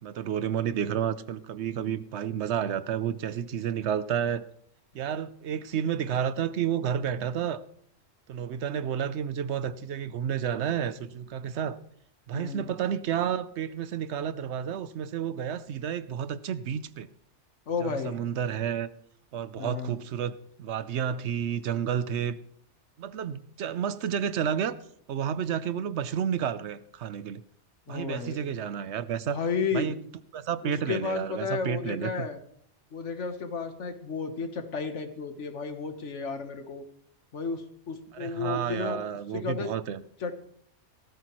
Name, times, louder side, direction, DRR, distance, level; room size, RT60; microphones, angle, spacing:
voice 1, 0.0-4.5 4.9-7.6 8.3-11.8 12.3-17.1 17.8-18.9 19.3-22.4 23.0-24.8 25.1-27.4 27.9-29.4 29.7-30.0 30.3-32.3 38.1-40.0, right 8 dB, 70° right, 15 dB, 0.9 m, -31 dB
voice 2, 12.3-12.7 17.7-18.2 19.6-20.0 27.9-28.4 29.2-29.9 30.6-32.4 32.9-36.8 37.3-39.0 39.3-39.7 40.2-40.3, left 5 dB, 80° left, 7 dB, 1.6 m, -32 dB
17.0 x 14.0 x 3.1 m, 0.67 s
omnidirectional pair, 1.2 m